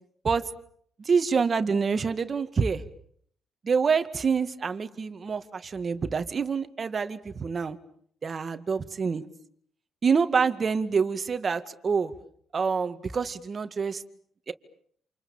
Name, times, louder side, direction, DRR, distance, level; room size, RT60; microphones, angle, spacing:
voice 1, 1.1-2.8 3.6-7.8 8.2-9.3 10.0-12.1 12.5-14.0 14.5-14.6, right 5 dB, 40° right, 10 dB, 2.1 m, -26 dB
28.5 x 28.0 x 7.3 m, 0.64 s
cardioid pair, 90°, 0 cm